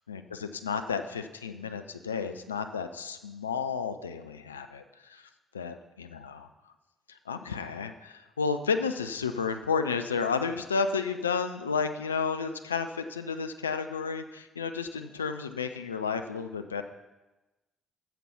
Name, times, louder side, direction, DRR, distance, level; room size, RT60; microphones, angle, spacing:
voice 1, 0.1-5.3 5.5-6.5 7.1-16.8, left 5 dB, 90° left, 8 dB, 0.5 m, -32 dB
9.1 x 7.5 x 5.7 m, 1.1 s
hypercardioid pair, 45°, 0 cm